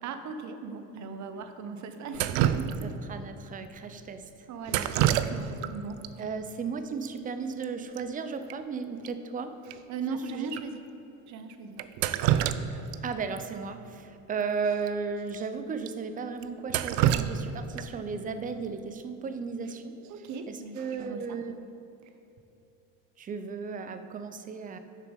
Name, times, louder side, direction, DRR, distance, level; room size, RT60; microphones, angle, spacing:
voice 1, 0.0-2.9 4.5-6.0 9.9-10.8 11.3-11.8 20.1-21.4, right 4 dB, 50° right, 8 dB, 0.7 m, -38 dB
Drip, 2.1-3.1 4.7-5.7 6.0-6.1 7.1-7.2 7.4-7.7 8.0-8.1 8.5-8.6 9.0-9.1 9.7-9.8 10.5-10.6 11.8-13.0 13.4-13.5 14.8-14.9 15.3-15.4 15.9-16.0 16.4-18.1 20.1-20.4 20.8-21.2, right 11 dB, 85° right, 0.5 m, -27 dB
voice 2, 2.8-4.2 6.2-9.5 10.1-10.5 13.0-19.9 20.5-21.6 23.2-24.8, right 5 dB, 20° right, 9 dB, 0.4 m, -35 dB
6.7 x 6.3 x 5.2 m, 2.9 s
cardioid pair, 115°, 38 cm